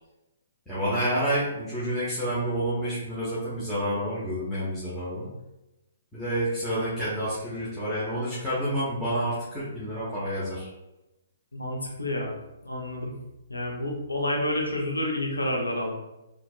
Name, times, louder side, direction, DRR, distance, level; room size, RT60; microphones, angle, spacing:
voice 1, 0.7-5.3 6.1-10.7, equal, ahead, -13 dB, 1.2 m, -29 dB
voice 2, 11.5-12.3 12.6-13.1 13.5-15.9, left 1 dB, 90° left, -1 dB, 0.9 m, -29 dB
4.2 x 2.9 x 2.5 m, 0.96 s
figure-of-eight pair, 130°, 0 cm